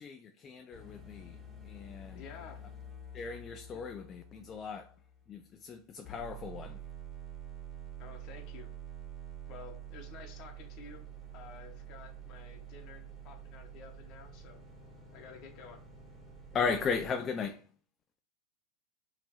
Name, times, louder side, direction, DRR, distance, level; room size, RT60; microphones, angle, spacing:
voice 1, 0.0-2.2 3.1-4.9 5.3-6.8 16.5-17.7, left 5 dB, 30° left, 0.4 m, -37 dB
sound 1, 0.7-5.7 6.0-17.1, right 5 dB, ahead, 1.9 m, -48 dB
voice 2, 2.1-2.6 3.7-3.8 8.0-8.7 9.5-11.0 11.3-14.6 15.1-15.8, left 5 dB, 45° left, 0.8 m, -51 dB
5.1 x 3.0 x 3.0 m
hypercardioid pair, 105°, 0 cm